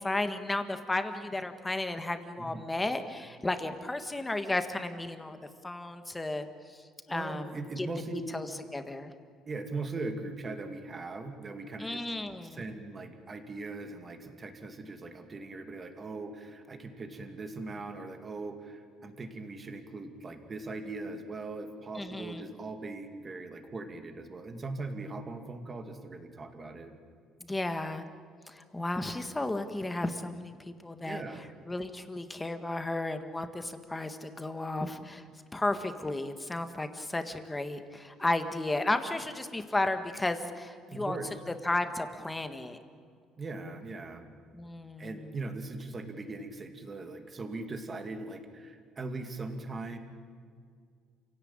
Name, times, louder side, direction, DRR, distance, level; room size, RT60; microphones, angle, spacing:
voice 1, 0.0-5.4 5.6-6.5 7.1-7.5 7.8-7.9 8.3-8.5 8.7-9.1 11.8-12.6 22.0-22.4 27.5-28.0 28.5-31.2 31.7-35.2 35.5-41.2 41.6-42.8 44.5-45.2, left 2 dB, 10° left, 8 dB, 1.6 m, -33 dB
voice 2, 7.1-8.2 9.5-12.0 12.4-26.9 31.0-31.5 40.9-41.4 43.4-44.3 45.0-50.0, right 3 dB, 25° right, 6 dB, 2.5 m, -40 dB
28.5 x 17.0 x 8.9 m, 2.1 s
cardioid pair, 145°, 0 cm